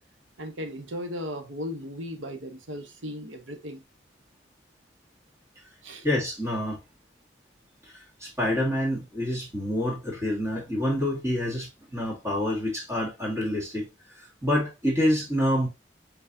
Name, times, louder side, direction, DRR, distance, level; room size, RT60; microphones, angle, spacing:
voice 1, 0.4-3.8 5.8-6.1, equal, 90° right, 1.0 m, -36 dB
voice 2, 6.0-6.8 7.8-15.7, left 1 dB, 15° right, 1.7 m, -27 dB
4.5 x 4.0 x 2.7 m
head